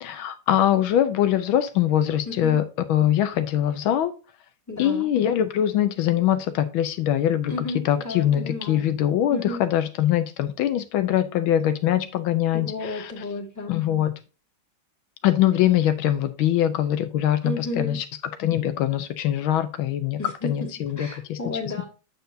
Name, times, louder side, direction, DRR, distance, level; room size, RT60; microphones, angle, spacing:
voice 1, 0.0-4.1 4.8-7.5 7.8-13.2 13.7-14.1 15.2-18.0 18.4-21.4, left 11 dB, 80° left, 10 dB, 1.5 m, -23 dB
voice 2, 2.3-2.6 4.7-5.1 7.5-8.8 9.3-9.6 12.5-13.8 17.4-18.0 20.2-20.5 21.0-21.8, left 2 dB, 10° left, 1 dB, 1.7 m, -32 dB
8.0 x 6.7 x 2.7 m, 0.32 s
omnidirectional pair, 2.2 m